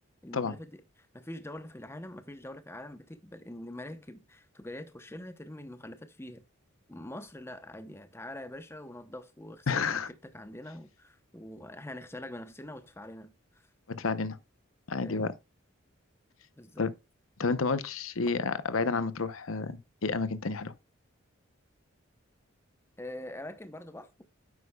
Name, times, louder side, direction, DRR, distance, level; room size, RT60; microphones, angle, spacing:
voice 1, 0.2-6.4 6.9-13.7 15.0-15.3 16.6-16.9 23.0-24.2, left 1 dB, 10° left, 0.8 m, -44 dB
voice 2, 9.7-10.1 13.9-14.4 14.9-15.3 16.8-16.9 17.4-20.7, left 4 dB, 85° left, 0.8 m, -30 dB
9.9 x 8.1 x 2.3 m
head